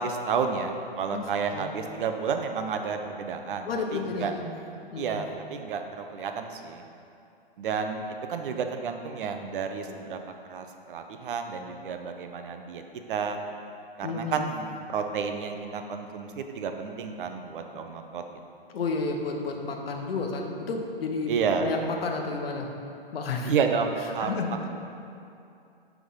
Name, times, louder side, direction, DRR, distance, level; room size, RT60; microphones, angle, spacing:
voice 1, 0.0-4.4 5.0-6.8 7.6-8.0 8.3-10.2 10.5-12.8 13.1-13.4 14.0-18.2 21.3-21.7 23.4-24.4, right 6 dB, 60° right, 6 dB, 0.6 m, -31 dB
voice 2, 3.7-4.5 4.9-5.2 14.0-14.5 18.7-21.3 21.6-22.7 23.1-23.5 24.2-24.7, left 3 dB, 75° left, 2 dB, 0.9 m, -31 dB
6.0 x 3.5 x 5.5 m, 2.6 s
hypercardioid pair, 135°, 30 cm